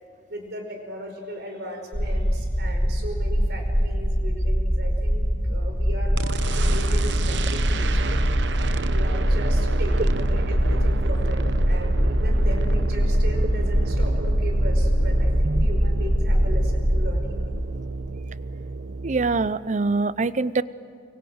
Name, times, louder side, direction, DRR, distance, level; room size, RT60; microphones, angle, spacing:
voice 1, 0.3-8.2 8.8-17.5, equal, 65° right, 3 dB, 5.1 m, -37 dB
sound 1, 1.9-17.2, equal, 10° left, 2.5 m, -23 dB
sound 2, 6.2-19.5, right 3 dB, 80° right, 0.9 m, -29 dB
voice 2, 19.0-20.6, right 3 dB, 40° right, 16 dB, 0.6 m, -24 dB
25.0 x 23.5 x 8.0 m, 2.2 s
head